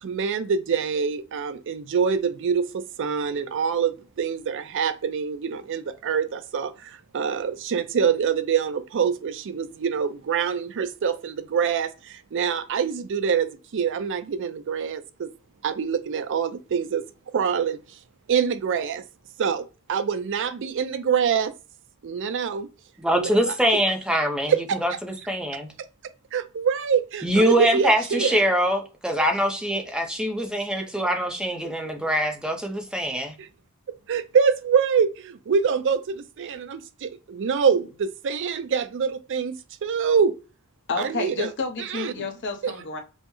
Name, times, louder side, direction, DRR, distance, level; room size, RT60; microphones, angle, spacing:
voice 1, 0.0-15.3 15.6-17.0 17.3-17.8 18.3-19.0 19.4-21.5 22.0-22.7 23.1-23.5 24.5-24.8 26.3-28.4 29.1-29.3 33.4-33.5 33.9-40.3 41.0-41.5 41.8-42.1 42.6-42.7, right 6 dB, 60° right, 0.4 m, -25 dB
voice 2, 23.0-24.5 24.8-25.7 27.2-33.3, equal, 5° right, 0.6 m, -24 dB
voice 3, 40.9-43.0, left 4 dB, 55° left, 0.8 m, -30 dB
5.5 x 2.1 x 3.0 m
head